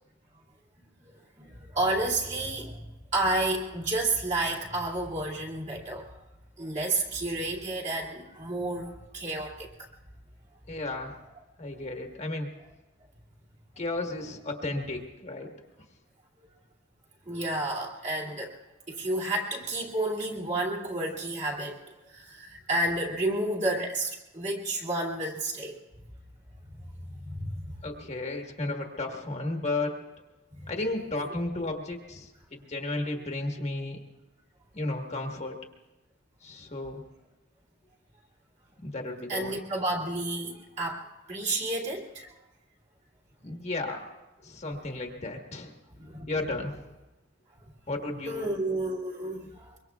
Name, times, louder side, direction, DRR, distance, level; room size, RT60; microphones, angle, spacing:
voice 1, 1.4-2.9 3.1-6.1 6.6-9.7 17.3-18.5 18.9-21.8 22.0-25.8 27.1-27.8 30.6-30.7 39.3-42.3 46.0-46.3 48.3-49.8, right 2 dB, 40° right, -3 dB, 2.6 m, -31 dB
voice 2, 10.7-11.2 11.6-12.5 13.8-15.5 27.8-30.0 30.7-34.0 34.7-35.6 36.4-37.0 38.8-39.6 43.4-44.0 44.4-45.7 46.3-46.7 47.9-48.5, left 2 dB, 35° left, 2 dB, 1.4 m, -33 dB
24.5 x 23.5 x 2.3 m, 1.0 s
head